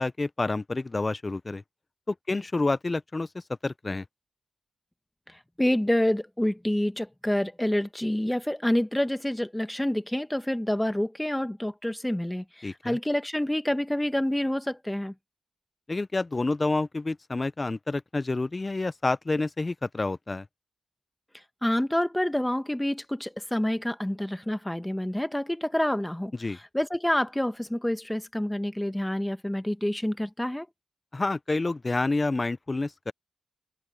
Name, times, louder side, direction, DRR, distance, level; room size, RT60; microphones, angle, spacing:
voice 1, 0.0-1.6 2.1-4.0 12.6-13.0 15.9-20.5 26.4-26.6 31.1-33.1, left 3 dB, 30° left, 0.8 m, -28 dB
voice 2, 5.3-15.1 21.6-30.7, left 1 dB, 10° left, 1.8 m, -28 dB
supercardioid pair, 50°, 0 cm